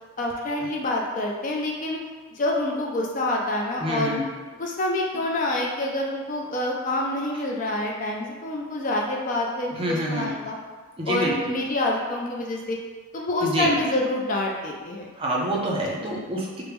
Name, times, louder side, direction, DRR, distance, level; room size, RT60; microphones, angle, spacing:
voice 1, 0.2-2.0 2.3-4.2 4.5-10.6 11.1-12.8 13.1-15.1, left 1 dB, 35° left, -1 dB, 0.3 m, -27 dB
voice 2, 3.8-4.2 9.7-10.3 11.0-11.3 13.4-13.7 15.2-16.6, right 1 dB, 25° right, -3 dB, 0.5 m, -26 dB
4.5 x 2.0 x 3.3 m, 1.4 s
head